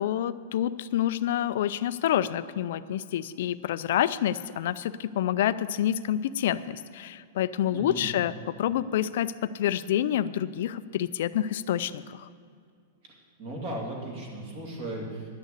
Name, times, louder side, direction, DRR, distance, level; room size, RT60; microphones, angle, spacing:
voice 1, 0.0-12.3, left 11 dB, 55° left, 14 dB, 0.4 m, -28 dB
voice 2, 7.7-8.2 13.0-15.3, right 1 dB, 40° right, -1 dB, 2.6 m, -37 dB
11.5 x 6.5 x 8.3 m, 2.2 s
supercardioid pair, 175°, 0 cm